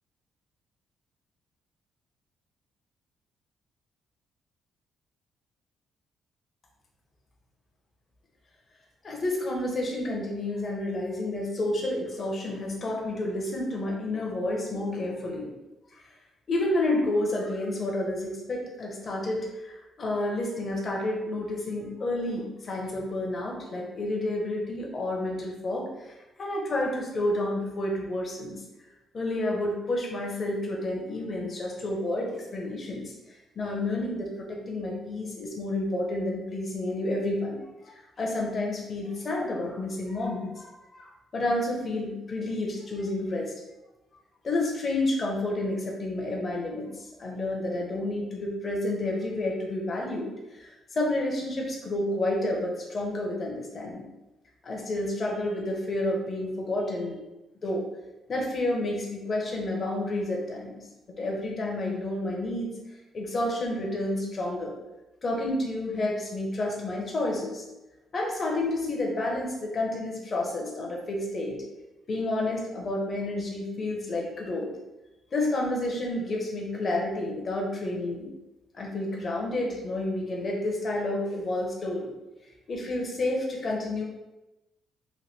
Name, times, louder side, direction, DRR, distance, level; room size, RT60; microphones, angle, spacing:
voice 1, 9.0-15.5 15.9-16.0 16.5-28.6 29.1-43.5 44.4-54.1 54.6-57.2 57.6-57.9 58.3-60.7 61.2-62.7 63.1-64.7 65.2-67.6 68.1-71.6 72.1-74.7 75.3-78.3 78.7-82.1 82.7-84.0, left 1 dB, 40° left, -1 dB, 0.7 m, -30 dB
2.9 x 2.2 x 3.3 m, 1.0 s
cardioid pair, 90°, 0 cm